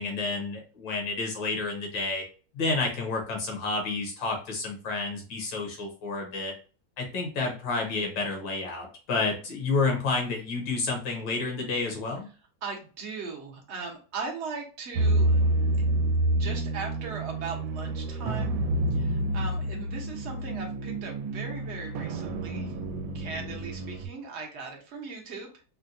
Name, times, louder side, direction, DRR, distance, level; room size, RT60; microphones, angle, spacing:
voice 1, 0.0-2.2 2.5-6.5 7.0-12.3, left 3 dB, 75° left, 2 dB, 1.7 m, -30 dB
voice 2, 12.6-15.4 16.3-18.6 18.9-22.7 23.1-25.5, right 4 dB, 50° right, 1 dB, 0.8 m, -38 dB
sound 1, 14.9-24.1, right 1 dB, 85° right, 1.3 m, -28 dB
4.3 x 2.2 x 2.6 m, 0.36 s
omnidirectional pair, 2.1 m